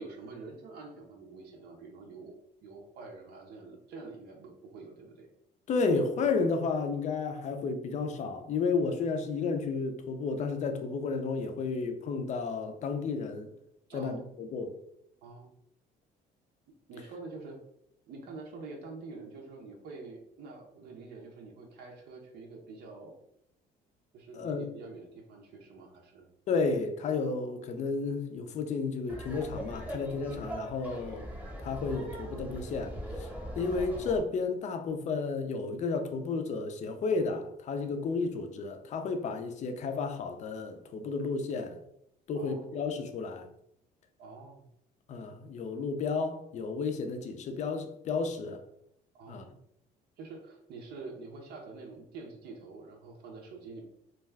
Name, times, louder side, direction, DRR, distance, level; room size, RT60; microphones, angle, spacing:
voice 1, 0.0-2.3 2.6-5.3 13.9-14.3 15.2-15.6 16.9-17.6 18.1-23.1 24.1-26.3 42.3-42.7 44.2-44.7 49.1-49.6 50.2-53.8, right 3 dB, 75° right, 0.6 m, -46 dB
voice 2, 5.7-13.5 13.9-14.7 24.3-24.7 26.5-31.3 31.6-33.3 33.6-41.8 42.3-43.5 45.1-48.6 49.3-49.5, left 4 dB, 45° left, 0.4 m, -32 dB
Laughter, 29.1-34.2, equal, 10° right, 0.9 m, -40 dB
2.3 x 2.3 x 3.2 m
cardioid pair, 110°, 17 cm